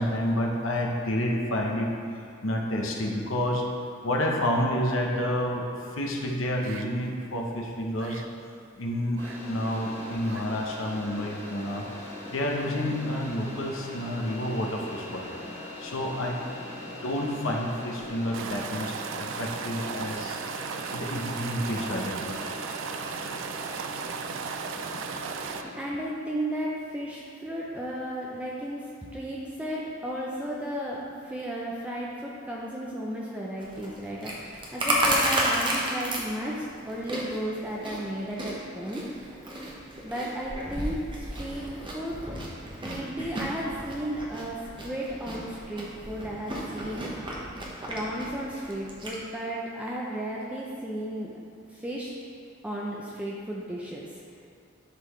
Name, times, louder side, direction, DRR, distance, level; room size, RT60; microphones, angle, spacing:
voice 1, 0.0-1.9 2.4-3.7 4.0-5.7 5.9-8.2 8.8-9.2 9.5-11.8 12.3-15.3 15.8-16.4 17.0-20.4 20.9-22.4, left 1 dB, 85° left, 0 dB, 0.9 m, -29 dB
sound 1, 6.6-6.9 7.2-7.4 7.7-8.3 9.1-9.4 9.7-9.8 10.1-10.4 10.8-10.9 11.5-11.6 14.4-14.6 15.0-15.1 18.0-25.6, right 7 dB, 70° right, 0.3 m, -36 dB
sound 2, 9.2-25.7, left 2 dB, 15° left, 1.2 m, -41 dB
voice 2, 25.8-39.3 40.0-41.7 41.9-42.2 42.8-47.3 47.9-51.4 51.7-52.1 52.6-54.2, right 1 dB, 5° right, -5 dB, 0.5 m, -34 dB
Chewing mastication, 33.6-49.2, right 1 dB, 25° right, 0.9 m, -33 dB
11.0 x 3.9 x 3.1 m, 2.4 s
head